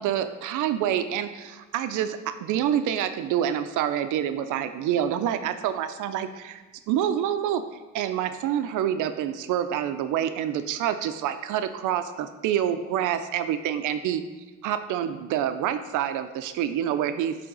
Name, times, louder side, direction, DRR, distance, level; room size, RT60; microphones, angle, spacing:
voice 1, 0.0-7.6 7.9-14.2 14.6-17.3, right 10 dB, 90° right, 10 dB, 0.5 m, -27 dB
10.0 x 3.5 x 3.9 m, 1.2 s
cardioid pair, 90°, 30 cm